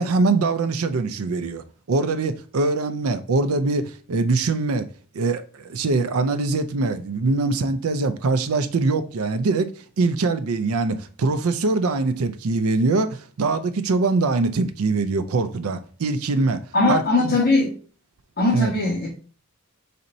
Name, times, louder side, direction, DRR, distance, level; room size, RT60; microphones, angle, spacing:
voice 1, 0.0-4.9 5.1-9.7 10.0-16.6 16.9-17.4 18.5-18.8, right 3 dB, 80° right, 0.5 m, -23 dB
voice 2, 16.7-17.7 18.4-19.1, left 2 dB, 45° left, 1.4 m, -20 dB
4.2 x 4.1 x 2.6 m
head